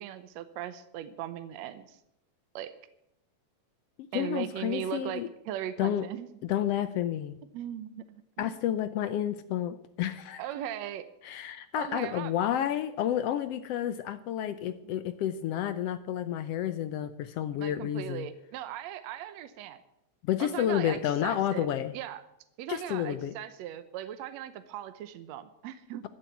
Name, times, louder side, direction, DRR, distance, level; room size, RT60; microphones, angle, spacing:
voice 1, 0.0-2.0 2.6-2.7 4.1-6.3 7.5-8.6 10.4-11.1 11.8-12.3 17.5-19.8 20.4-21.7 21.9-22.2 22.6-26.1, right 11 dB, 70° right, 12 dB, 2.0 m, -38 dB
voice 2, 4.0-5.3 5.8-6.1 6.5-7.4 8.4-10.4 11.2-18.3 20.2-21.9 22.7-23.3, left 11 dB, 75° left, 12 dB, 1.5 m, -30 dB
14.5 x 7.7 x 9.2 m, 0.79 s
omnidirectional pair, 3.3 m